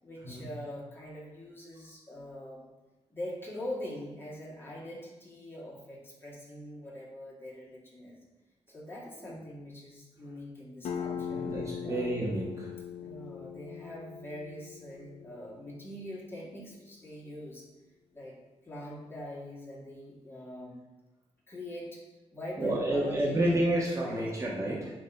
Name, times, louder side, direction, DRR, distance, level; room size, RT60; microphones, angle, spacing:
voice 1, 0.0-2.7 3.1-8.2 8.7-12.1 13.0-17.7 18.1-18.4 18.6-20.8 21.5-22.0 22.3-23.4 24.0-24.3 24.6-24.9, left 1 dB, 20° left, -6 dB, 2.2 m, -43 dB
sound 1, 10.8-16.3, left 8 dB, 85° left, 0.6 m, -40 dB
voice 2, 11.3-12.7 22.6-24.9, right 1 dB, 25° right, -4 dB, 1.3 m, -30 dB
9.4 x 3.1 x 4.0 m, 1.1 s
cardioid pair, 95°, 11 cm